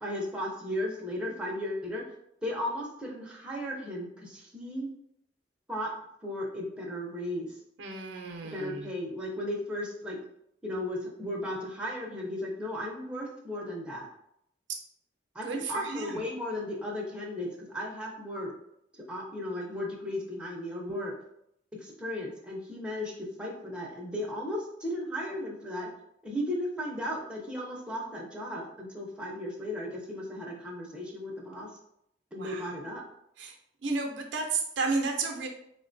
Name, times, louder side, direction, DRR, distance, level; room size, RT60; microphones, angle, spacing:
voice 1, 0.0-2.0 2.4-4.9 5.7-5.9 6.2-7.6 8.5-10.2 10.6-14.1 15.3-18.5 19.1-21.1 21.8-25.9 26.2-31.7 32.3-33.0, left 1 dB, 5° right, -2 dB, 0.5 m, -35 dB
voice 2, 7.8-8.9 15.4-16.2 32.4-32.7 33.4-33.5 33.8-35.5, right 3 dB, 70° right, 2 dB, 0.5 m, -32 dB
3.7 x 2.2 x 2.5 m, 0.75 s
head